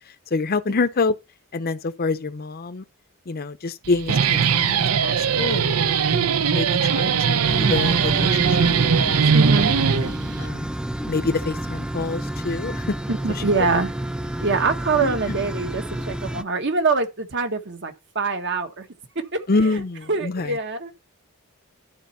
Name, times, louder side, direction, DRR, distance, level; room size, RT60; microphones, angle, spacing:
voice 1, 0.1-1.2 1.5-2.8 3.3-8.9 9.3-9.8 10.4-10.7 11.0-12.9 13.3-13.4 15.0-15.4 19.5-20.6, left 3 dB, 45° left, 0.6 m, -27 dB
Guitar, 3.8-10.5, right 6 dB, 75° right, 0.6 m, -20 dB
sound 1, 7.4-16.4, right 1 dB, 5° right, 0.4 m, -29 dB
voice 2, 9.3-9.7 13.1-13.9 14.4-18.8 19.3-19.4 20.1-20.9, right 4 dB, 55° right, 1.4 m, -24 dB
12.0 x 4.4 x 5.5 m
head